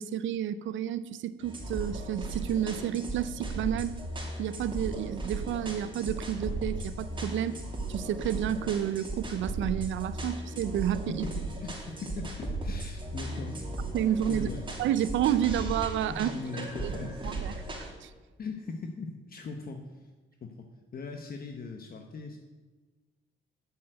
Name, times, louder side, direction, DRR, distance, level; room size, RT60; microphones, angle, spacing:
voice 1, 0.0-3.9 4.4-7.6 7.9-11.2 13.9-14.5 14.8-16.3 16.6-16.9 17.2-18.1, right 10 dB, 75° right, 15 dB, 0.6 m, -30 dB
sound 1, 1.4-17.9, right 2 dB, 25° right, 2.8 m, -36 dB
voice 2, 11.6-13.7 14.3-14.7 16.1-17.4 18.4-20.1 20.4-20.7 20.9-22.4, left 4 dB, 50° left, 4 dB, 1.0 m, -40 dB
7.6 x 7.3 x 7.8 m, 1.3 s
cardioid pair, 90°, 20 cm